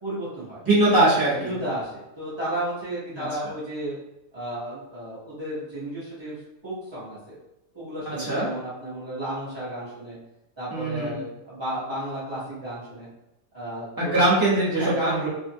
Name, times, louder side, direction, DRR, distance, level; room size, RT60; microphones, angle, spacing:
voice 1, 0.0-0.6 1.4-4.0 4.3-7.4 7.7-10.2 10.6-13.1 13.5-14.3 14.7-15.3, right 1 dB, 35° right, -11 dB, 0.4 m, -33 dB
voice 2, 0.7-1.6 3.1-3.3 8.1-8.5 10.7-11.2 14.0-15.3, right 2 dB, 15° right, -8 dB, 0.9 m, -22 dB
2.6 x 2.4 x 2.7 m, 0.91 s
omnidirectional pair, 1.7 m